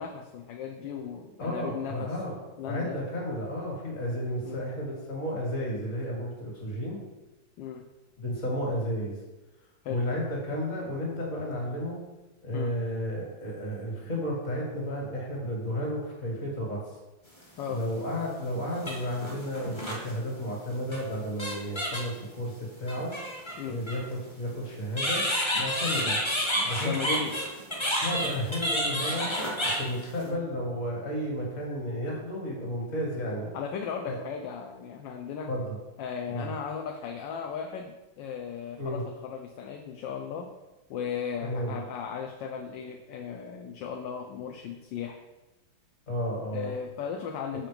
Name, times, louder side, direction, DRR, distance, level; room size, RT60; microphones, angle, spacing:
voice 1, 0.0-2.1 2.6-2.9 4.4-4.7 7.6-7.8 9.8-10.0 12.5-12.7 17.6-17.8 23.6-23.8 25.9-26.1 26.8-27.4 30.2-30.4 33.5-35.5 36.0-40.5 40.9-45.2 46.5-47.7, left 7 dB, 75° left, 3 dB, 1.3 m, -36 dB
voice 2, 1.4-7.0 8.2-9.2 9.9-12.0 12.4-16.8 17.7-22.5 22.8-23.1 23.7-25.2 25.6-26.2 26.6-27.3 28.0-29.3 29.6-33.5 34.0-34.2 35.5-35.8 36.3-36.5 38.8-39.0 41.4-41.8 46.1-46.7, equal, 40° left, -2 dB, 2.4 m, -32 dB
sound 1, 17.6-17.7 18.7-20.1 20.9-21.0 21.4-22.2 22.9-24.0 24.9-30.3, equal, 20° left, 0.9 m, -30 dB
7.3 x 4.4 x 5.1 m, 1.1 s
omnidirectional pair, 2.2 m